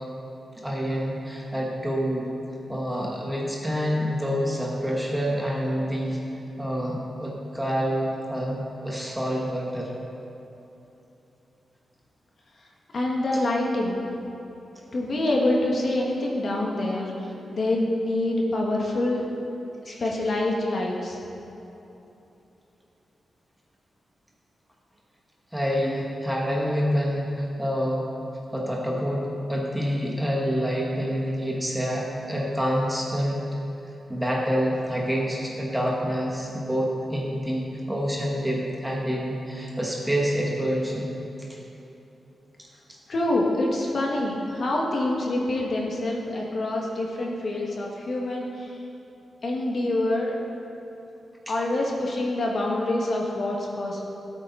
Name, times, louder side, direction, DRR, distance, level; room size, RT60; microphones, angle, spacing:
voice 1, 0.6-2.3 2.7-6.2 6.6-9.9 19.9-20.1 25.5-28.1 28.5-33.4 34.1-41.1 41.5-41.6 51.5-51.6, equal, 5° right, -3 dB, 1.4 m, -27 dB
voice 2, 12.9-14.1 14.9-17.1 17.5-19.3 19.9-21.2 43.1-48.7 49.4-50.4 51.5-54.0, left 1 dB, 45° left, -2 dB, 1.9 m, -26 dB
18.0 x 8.6 x 4.1 m, 3.0 s
wide cardioid pair, 160°, 0 cm